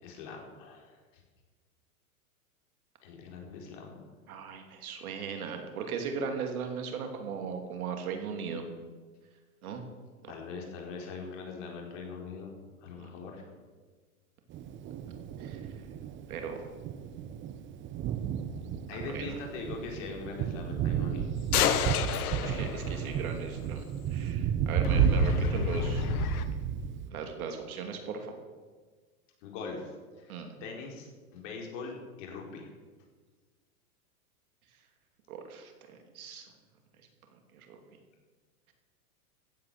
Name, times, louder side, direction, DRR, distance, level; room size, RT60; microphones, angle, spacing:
voice 1, 0.0-1.2 3.0-4.0 10.3-13.5 18.9-21.2 29.4-32.7, left 4 dB, 55° left, 0 dB, 4.4 m, -42 dB
voice 2, 4.3-8.6 9.6-9.8 10.2-10.3 13.0-13.3 15.4-15.6 16.3-16.7 19.1-19.3 22.4-23.8 24.1-26.1 27.1-28.3 30.3-30.5 35.3-35.7 36.1-36.5 37.5-37.8, right 6 dB, 70° right, 5 dB, 3.0 m, -38 dB
Thunder, 14.5-27.1, right 9 dB, 25° right, 0.9 m, -32 dB
sound 1, 21.5-23.4 24.8-26.5, left 8 dB, 75° left, 1.3 m, -30 dB
15.0 x 9.1 x 6.6 m, 1.4 s
hypercardioid pair, 130°, 44 cm